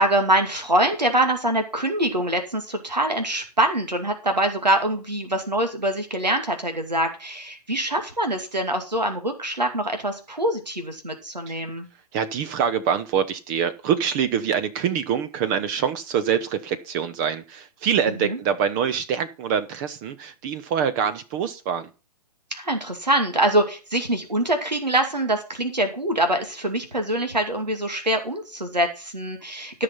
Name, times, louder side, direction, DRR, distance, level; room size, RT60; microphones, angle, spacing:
voice 1, 0.0-11.9 18.2-18.4 22.5-29.8, right 1 dB, 90° right, 6 dB, 2.4 m, -24 dB
voice 2, 12.1-21.9, right 8 dB, 30° right, 13 dB, 0.8 m, -25 dB
14.0 x 5.8 x 5.5 m, 0.32 s
figure-of-eight pair, 120°, 21 cm